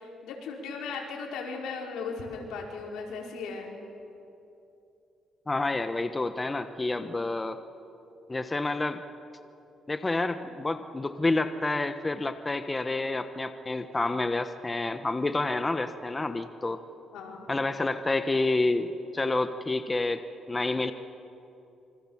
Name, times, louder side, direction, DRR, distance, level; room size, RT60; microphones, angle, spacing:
voice 1, 0.0-3.8 7.0-7.2 17.1-17.5, left 4 dB, 85° left, 0 dB, 4.9 m, -37 dB
voice 2, 5.5-7.6 8.3-9.0 9.9-16.8 17.5-18.9 19.1-20.2 20.5-20.9, left 2 dB, 20° left, 9 dB, 1.1 m, -29 dB
27.5 x 25.0 x 7.4 m, 2.8 s
cardioid pair, 90°, 0 cm